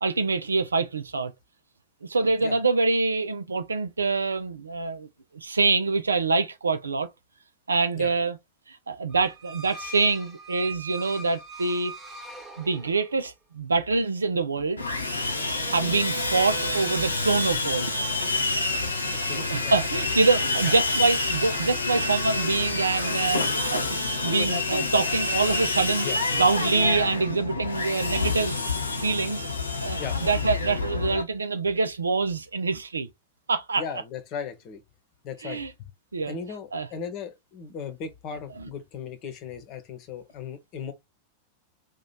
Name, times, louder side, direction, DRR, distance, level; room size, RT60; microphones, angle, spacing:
voice 1, 0.0-1.3 2.1-5.1 5.3-7.1 7.7-8.4 8.7-11.9 12.6-14.8 15.7-18.2 19.3-23.8 24.2-26.1 26.3-28.6 29.0-29.4 29.8-33.1 33.5-33.8 35.4-35.7 36.1-36.4 36.7-36.9, right 4 dB, 75° right, 0.5 m, -25 dB
sound 1, 9.1-13.3, right 3 dB, 20° right, 1.1 m, -41 dB
Sawing, 14.8-31.2, left 3 dB, 80° left, 0.8 m, -28 dB
voice 2, 19.1-20.0 20.6-20.8 26.0-26.2 30.0-30.2 33.8-34.8 35.2-35.9 36.3-40.9, left 6 dB, 40° left, 0.9 m, -37 dB
3.0 x 2.4 x 4.0 m
figure-of-eight pair, 90°, 0 cm